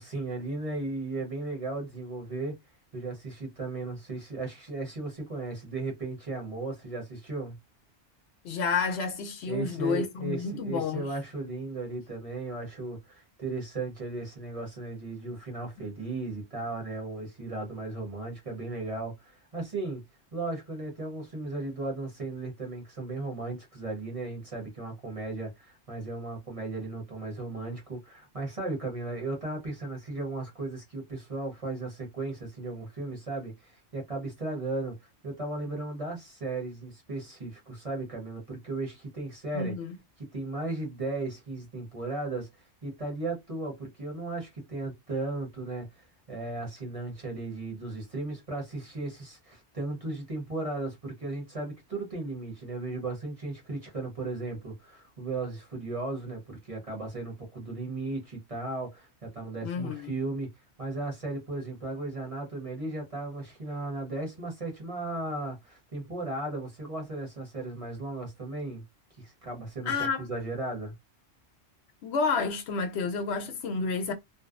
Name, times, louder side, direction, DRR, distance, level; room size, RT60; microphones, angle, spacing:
voice 1, 0.0-2.6 2.9-7.6 9.4-20.0 20.3-39.7 40.2-60.5 60.8-68.8 69.2-70.9, right 2 dB, 35° right, 0.9 m, -36 dB
voice 2, 8.4-11.1 39.5-40.0 59.6-60.1 69.9-70.3 72.0-74.1, left 5 dB, 70° left, 0.8 m, -30 dB
2.6 x 2.0 x 2.4 m
omnidirectional pair, 1.2 m